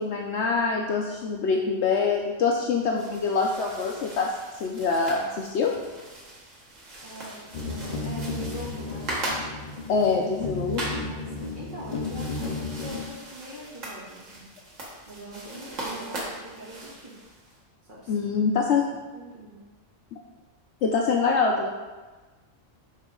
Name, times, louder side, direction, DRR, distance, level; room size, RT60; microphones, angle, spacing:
voice 1, 0.0-4.3 4.6-5.7 9.9-10.8 18.1-19.0 20.8-21.7, left 4 dB, 65° left, 1 dB, 0.9 m, -25 dB
sound 1, 2.7-17.6, right 1 dB, 75° right, 1.9 m, -39 dB
voice 2, 7.0-9.3 10.9-14.4 15.1-17.1 17.9-18.3 19.1-19.6, right 1 dB, 40° right, -7 dB, 2.2 m, -42 dB
sound 2, 7.5-13.0, left 3 dB, 45° left, 0.7 m, -33 dB
9.9 x 4.0 x 3.7 m, 1.3 s
omnidirectional pair, 1.3 m